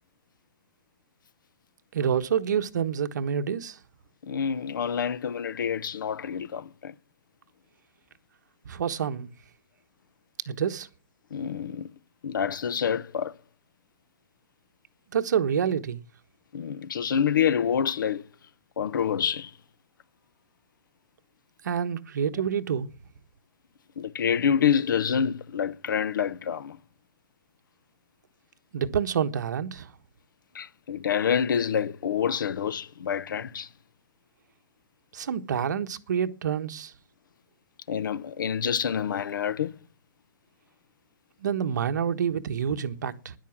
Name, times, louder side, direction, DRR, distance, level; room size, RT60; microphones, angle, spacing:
voice 1, 1.9-3.8 8.6-9.3 10.5-10.9 15.1-16.0 21.6-22.9 28.7-29.9 35.1-36.9 41.4-43.3, right 8 dB, 60° right, 1.3 m, -27 dB
voice 2, 4.2-6.9 11.3-11.9 12.2-13.3 16.5-18.2 18.8-19.5 24.0-26.8 30.5-33.7 37.9-39.7, left 8 dB, 75° left, 0.9 m, -27 dB
13.0 x 10.5 x 7.3 m
hypercardioid pair, 175°, 11 cm